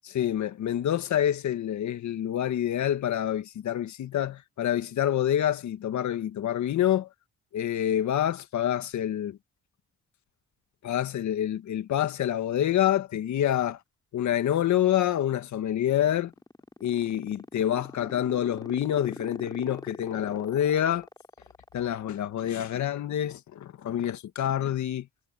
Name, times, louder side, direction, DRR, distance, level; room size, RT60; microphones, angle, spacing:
voice 1, 0.0-7.1 7.5-9.4 10.8-13.8 14.1-16.3 16.8-21.1 21.7-25.1, left 11 dB, 70° left, 1.9 m, -27 dB
sound 1, 15.8-22.4, left 2 dB, 15° left, 3.9 m, -41 dB
cardioid pair, 90°, 30 cm